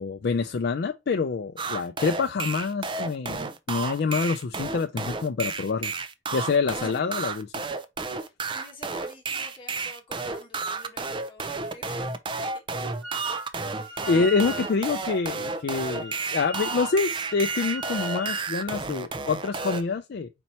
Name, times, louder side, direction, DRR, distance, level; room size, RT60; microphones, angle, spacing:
voice 1, 0.0-5.9 6.3-7.5 14.1-20.3, left 4 dB, 55° left, 0.4 m, -26 dB
sound 1, 1.6-19.8, right 4 dB, 25° right, 0.4 m, -32 dB
voice 2, 8.2-12.6 13.3-13.4 13.7-14.1, left 1 dB, 25° left, 1.7 m, -49 dB
Wind instrument woodwind instrument, 13.0-13.4 13.7-18.5, right 2 dB, 70° right, 0.9 m, -38 dB
4.4 x 4.2 x 2.9 m
head